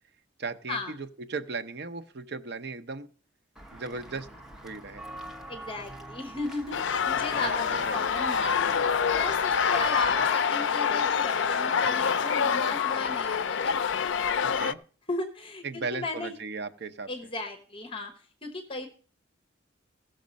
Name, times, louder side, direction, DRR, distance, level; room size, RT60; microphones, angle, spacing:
voice 1, 0.4-3.1 3.7-4.3 4.6-5.0 7.3-8.1 14.4-14.8 15.6-17.1, right 4 dB, 55° right, 9 dB, 0.7 m, -37 dB
Walk footsteps / Bell, 3.6-10.2, right 1 dB, 5° right, 0.8 m, -45 dB
voice 2, 5.5-6.8 7.0-8.6 9.1-13.9 15.1-16.3 17.1-18.1 18.4-18.9, left 2 dB, 25° left, 7 dB, 0.9 m, -35 dB
sound 1, 6.7-14.7, left 6 dB, 65° left, 0.4 m, -26 dB
15.5 x 6.5 x 5.2 m, 0.42 s
head